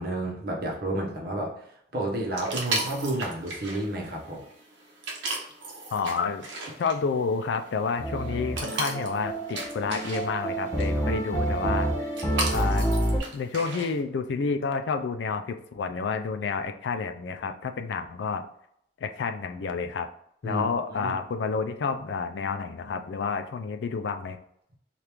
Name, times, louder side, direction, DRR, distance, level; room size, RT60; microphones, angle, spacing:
voice 1, 0.0-1.6 1.9-4.5 20.4-20.7 20.9-21.1, right 1 dB, 50° right, -1 dB, 0.8 m, -31 dB
sound 1, 2.4-14.0, right 2 dB, 85° right, 0.8 m, -36 dB
voice 2, 5.9-6.5 6.8-12.1 12.5-12.9 13.3-18.4 19.0-20.1 20.4-24.4, left 5 dB, 75° left, 7 dB, 0.3 m, -30 dB
sound 2, 8.0-13.2, right 1 dB, 15° left, 0.5 m, -28 dB
2.9 x 2.4 x 3.4 m, 0.71 s
head